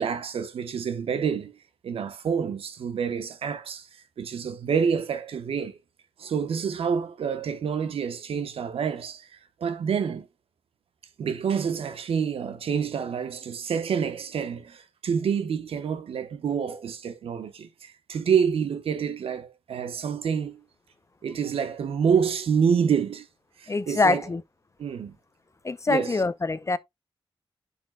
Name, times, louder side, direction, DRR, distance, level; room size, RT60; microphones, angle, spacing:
voice 1, 0.0-1.6 1.8-3.9 4.2-5.8 6.2-9.3 9.6-10.3 11.2-20.6 21.2-23.3 23.6-24.2 24.8-25.2 25.9-26.2, right 7 dB, 80° right, 1.0 m, -27 dB
voice 2, 23.7-24.4 25.6-26.8, left 3 dB, 30° left, 0.6 m, -24 dB
10.5 x 5.4 x 2.2 m
cardioid pair, 60°, 10 cm